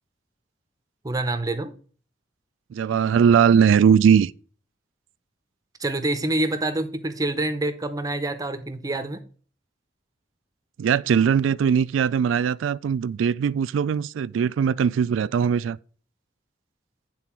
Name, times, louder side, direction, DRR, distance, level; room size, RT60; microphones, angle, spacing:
voice 1, 1.0-1.7 5.8-9.2, right 2 dB, 20° right, 0.6 m, -26 dB
voice 2, 2.7-4.3 10.8-15.8, right 7 dB, 85° right, 0.3 m, -20 dB
9.1 x 3.9 x 5.9 m
head